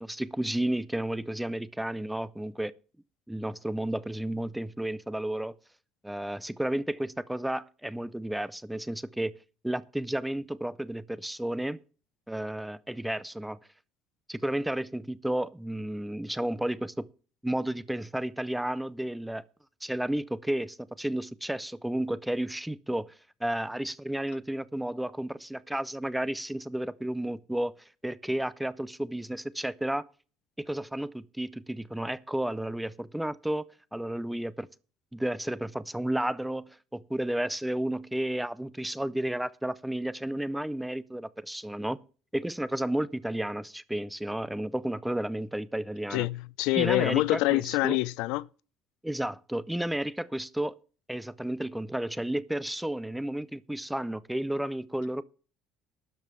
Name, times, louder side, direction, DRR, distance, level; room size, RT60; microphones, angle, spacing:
voice 1, 0.0-2.7 3.3-5.5 6.0-9.3 9.6-11.8 12.3-13.6 14.3-17.1 17.4-19.4 19.8-23.1 23.4-27.7 28.0-30.0 30.6-34.7 35.1-42.0 42.3-46.3 46.8-48.0 49.0-50.7 51.1-55.2, right 1 dB, 5° right, 0.5 m, -32 dB
voice 2, 46.1-48.5, left 19 dB, 75° left, 0.5 m, -26 dB
12.5 x 5.4 x 7.4 m
cardioid pair, 165°, 0 cm